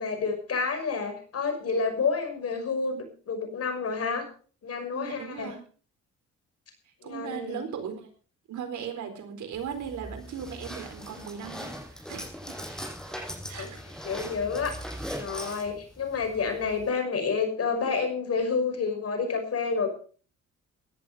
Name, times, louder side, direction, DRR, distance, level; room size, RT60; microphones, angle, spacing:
voice 1, 0.0-4.2 4.6-5.5 7.0-7.6 13.5-13.7 14.0-14.7 15.1-19.9, left 5 dB, 55° left, 5 dB, 6.0 m, -29 dB
voice 2, 4.9-5.6 7.0-8.1 8.5-12.5 13.5-13.8, right 7 dB, 75° right, 7 dB, 4.3 m, -38 dB
sound 1, 9.5-16.9, equal, ahead, 6.2 m, -40 dB
16.5 x 11.0 x 5.0 m, 0.41 s
cardioid pair, 90°, 30 cm